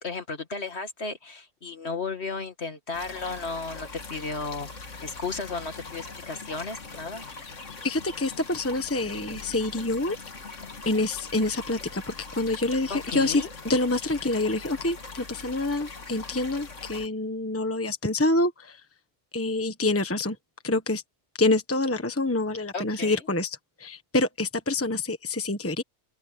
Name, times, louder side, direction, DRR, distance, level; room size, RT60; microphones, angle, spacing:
voice 1, 0.0-4.7 5.0-7.2 12.9-13.5 22.7-23.2, left 4 dB, 60° left, 2.3 m, -34 dB
sound 1, 2.9-17.1, left 3 dB, 90° left, 2.4 m, -42 dB
voice 2, 7.8-10.2 10.8-18.8 19.3-20.4 20.6-21.0 21.4-25.8, left 2 dB, 10° left, 1.2 m, -27 dB
open air
omnidirectional pair, 1.2 m